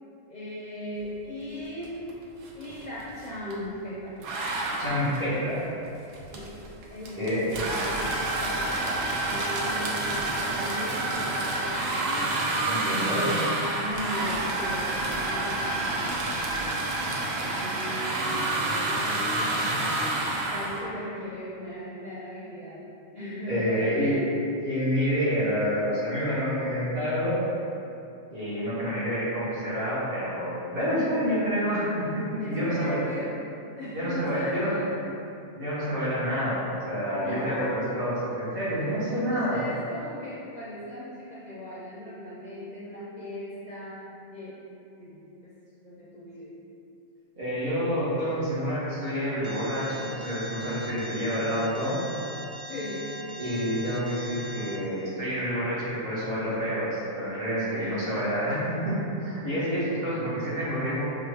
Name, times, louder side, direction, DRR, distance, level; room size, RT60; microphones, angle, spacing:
voice 1, 0.3-2.1 2.5-4.2 6.3-6.5 6.9-9.0 9.3-12.4 13.0-13.4 13.7-16.8 17.4-20.1 20.5-22.9 23.1-24.3 32.4-33.4 33.8-34.9 37.2-37.8 39.3-44.0 44.3-44.6 45.0-45.5 45.8-46.6 52.7-53.1 57.7-58.4, equal, 45° left, -9 dB, 0.6 m, -38 dB
sound 1, 1.8-2.1 2.4-3.7 4.2-20.8, right 2 dB, 85° right, 1.0 m, -29 dB
voice 2, 4.8-5.7 7.2-7.4 12.6-13.2 23.5-24.2 24.6-27.4 28.3-33.0 33.9-35.0 35.5-39.6 47.4-52.0 53.4-61.0, equal, 50° right, -10 dB, 1.4 m, -28 dB
Alarm, 49.4-54.8, equal, 65° right, 0.5 m, -40 dB
5.7 x 2.4 x 3.3 m, 2.7 s
omnidirectional pair, 1.3 m